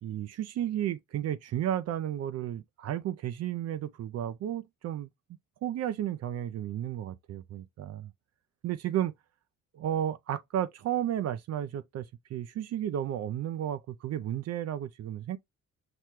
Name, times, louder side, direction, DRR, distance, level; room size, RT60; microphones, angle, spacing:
voice 1, 0.0-5.1 5.6-8.1 8.6-9.1 9.7-15.4, right 11 dB, 55° right, 0.4 m, -33 dB
5.9 x 2.1 x 3.0 m
cardioid pair, 90°, 30 cm